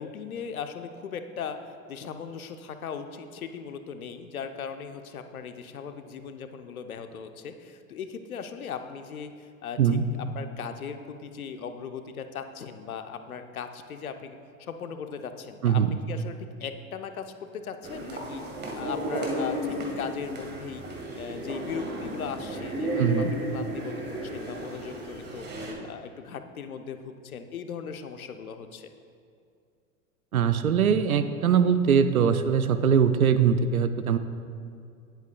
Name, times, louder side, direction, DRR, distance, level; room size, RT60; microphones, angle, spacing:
voice 1, 0.0-1.6 1.9-18.4 18.8-25.5 25.9-28.9, left 6 dB, 75° left, 8 dB, 0.8 m, -38 dB
voice 2, 9.8-10.1 15.6-16.0 23.0-23.3 30.3-34.2, right 7 dB, 80° right, 11 dB, 0.6 m, -22 dB
sound 1, 17.8-25.7, right 1 dB, 25° right, 1.6 m, -33 dB
18.5 x 8.0 x 2.3 m, 2.4 s
figure-of-eight pair, 85°, 43 cm